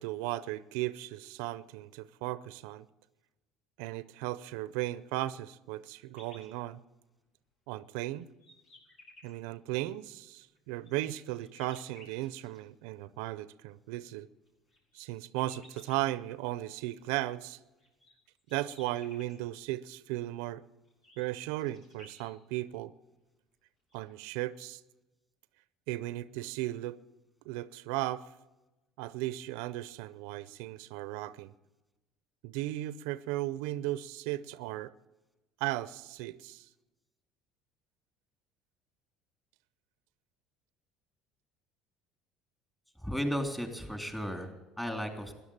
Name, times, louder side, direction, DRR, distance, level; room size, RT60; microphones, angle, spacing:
voice 1, 0.0-2.9 3.8-6.8 7.7-8.3 9.2-14.3 14.9-17.6 18.5-20.6 21.2-22.9 23.9-24.8 25.9-27.0 27.5-28.3 29.0-31.5 32.4-34.9 35.6-36.7, right 16 dB, 80° right, 0.5 m, -36 dB
sound 1, 6.1-6.5 7.2-7.3 7.9-9.3 10.4-12.6 14.3-16.1 17.5-19.4 20.8-22.3 23.5-23.6 23.9-24.2, left 2 dB, 60° left, 6.8 m, -57 dB
voice 2, 43.0-45.3, equal, 10° left, 3.2 m, -35 dB
14.5 x 11.0 x 8.7 m
supercardioid pair, 95°, 0 cm